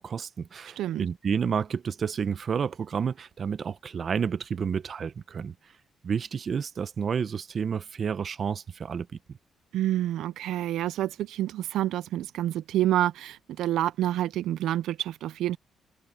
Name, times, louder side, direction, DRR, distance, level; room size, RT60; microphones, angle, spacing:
voice 1, 0.0-5.5 6.0-9.4, right 6 dB, 50° right, 0.8 m, -30 dB
voice 2, 0.8-1.1 9.7-15.6, right 13 dB, 80° right, 0.4 m, -28 dB
cardioid pair, 90°, 0 cm